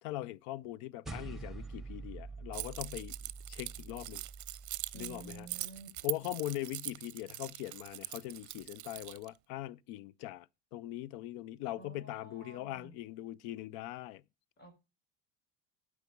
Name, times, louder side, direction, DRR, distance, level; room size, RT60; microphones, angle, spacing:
voice 1, 0.0-3.1 3.5-4.2 4.9-5.5 6.0-14.2, left 15 dB, 70° left, 0.6 m, -41 dB
sound 1, 1.1-5.7, right 4 dB, ahead, 1.4 m, -46 dB
Keys jangling, 2.5-9.3, right 16 dB, 45° right, 0.6 m, -42 dB
voice 2, 4.9-5.9 11.7-12.9 14.6-14.7, right 4 dB, 25° left, 5.9 m, -51 dB
12.0 x 4.9 x 5.2 m
hypercardioid pair, 80°, 42 cm